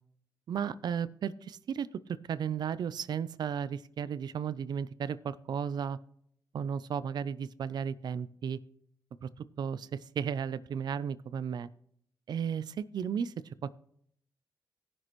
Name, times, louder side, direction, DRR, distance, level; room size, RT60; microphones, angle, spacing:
voice 1, 0.5-6.0 6.5-8.6 9.2-9.3 9.6-11.7 12.3-13.3, right 7 dB, 70° right, 16 dB, 0.5 m, -34 dB
17.5 x 6.2 x 3.0 m, 0.70 s
cardioid pair, 85°, 7 cm